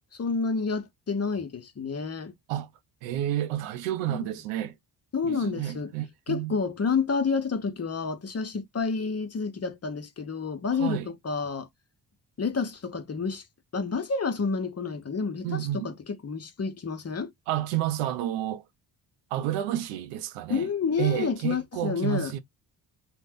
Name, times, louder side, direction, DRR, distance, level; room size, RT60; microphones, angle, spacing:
voice 1, 0.2-2.3 4.1-4.3 5.1-5.9 6.3-11.7 12.4-13.4 13.7-17.3 20.5-22.3, left 5 dB, 30° left, 0.8 m, -29 dB
voice 2, 3.0-4.7 5.2-6.5 10.8-11.1 15.4-15.9 17.5-18.6 19.3-20.7 21.0-22.4, right 12 dB, 90° right, 0.6 m, -30 dB
2.6 x 2.2 x 3.3 m
supercardioid pair, 50°, 49 cm